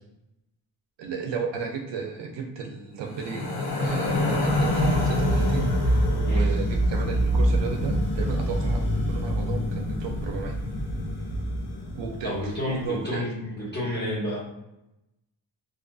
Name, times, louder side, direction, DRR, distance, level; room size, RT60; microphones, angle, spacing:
voice 1, 1.0-10.6 11.9-12.3 12.7-13.2, right 5 dB, 65° right, 2 dB, 0.5 m, -34 dB
sound 1, 3.1-12.4, equal, 55° left, 0.7 m, -25 dB
voice 2, 12.2-14.4, left 1 dB, 20° left, -7 dB, 1.0 m, -30 dB
2.4 x 2.4 x 2.3 m, 0.88 s
wide cardioid pair, 160°, 46 cm